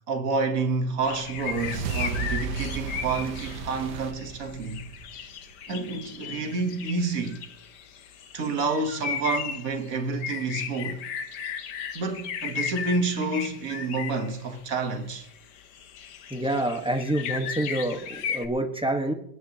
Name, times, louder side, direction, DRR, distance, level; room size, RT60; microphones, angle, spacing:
voice 1, 0.1-4.8 5.7-7.4 8.3-11.0 11.9-15.3, right 3 dB, 60° right, 1.6 m, -29 dB
sound 1, 1.0-14.6 14.9-18.5, left 7 dB, 90° left, 1.5 m, -36 dB
sound 2, 1.1-5.6, right 6 dB, 90° right, 1.5 m, -35 dB
voice 2, 16.3-19.1, right 1 dB, 5° right, 1.2 m, -27 dB
28.0 x 9.5 x 2.9 m
omnidirectional pair, 1.8 m